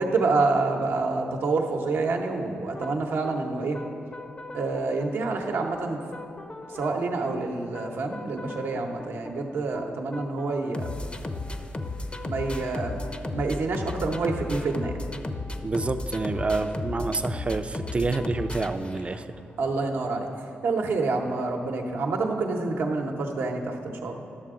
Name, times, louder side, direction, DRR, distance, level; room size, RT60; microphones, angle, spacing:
voice 1, 0.0-3.8 4.5-6.0 6.7-10.9 12.2-13.0 13.3-14.9 19.6-20.3 20.6-24.1, right 3 dB, 80° right, 2 dB, 0.9 m, -27 dB
sound 1, 2.7-19.4, left 2 dB, 25° left, 0.5 m, -36 dB
voice 2, 15.6-19.3, right 3 dB, 30° right, 10 dB, 0.4 m, -28 dB
11.5 x 6.7 x 3.7 m, 2.8 s
cardioid pair, 65°, 4 cm